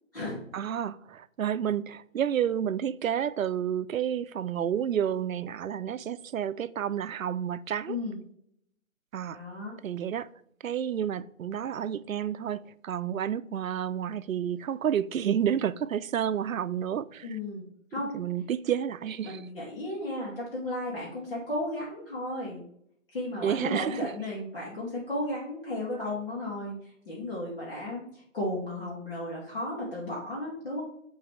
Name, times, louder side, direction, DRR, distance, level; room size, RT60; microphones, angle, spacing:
voice 1, 0.5-8.0 9.1-9.4 9.8-10.3 10.6-17.4 18.1-19.4 23.4-24.1, right 9 dB, 90° right, 0.5 m, -30 dB
voice 2, 7.9-8.2 9.3-9.8 17.2-17.6 17.9-18.2 19.2-22.6 23.1-26.8 27.1-30.8, left 1 dB, 45° left, 2.4 m, -34 dB
8.6 x 4.0 x 3.3 m
hypercardioid pair, 170°, 40 cm